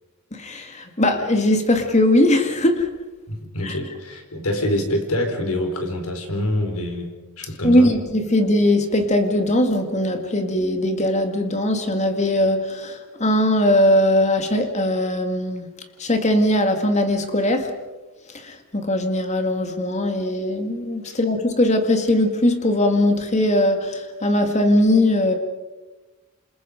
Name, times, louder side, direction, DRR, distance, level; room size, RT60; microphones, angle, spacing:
voice 1, 0.3-2.9 3.6-3.7 7.6-15.7 16.0-17.8 18.3-25.4, left 1 dB, 30° left, 2.1 m, -20 dB
voice 2, 3.3-7.9 21.0-21.2, left 1 dB, 85° left, 4.5 m, -26 dB
28.0 x 27.5 x 5.2 m
head